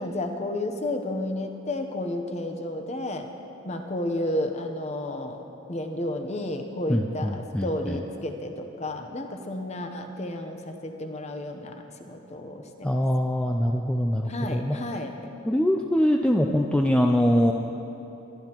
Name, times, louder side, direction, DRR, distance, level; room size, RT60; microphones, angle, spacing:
voice 1, 0.0-3.3 3.6-5.4 5.7-13.0 14.3-15.3, left 1 dB, 30° left, 5 dB, 0.8 m, -32 dB
voice 2, 6.9-8.0 12.8-14.8 15.5-17.5, equal, 5° left, 1 dB, 0.3 m, -23 dB
22.5 x 11.5 x 3.0 m, 3.0 s
head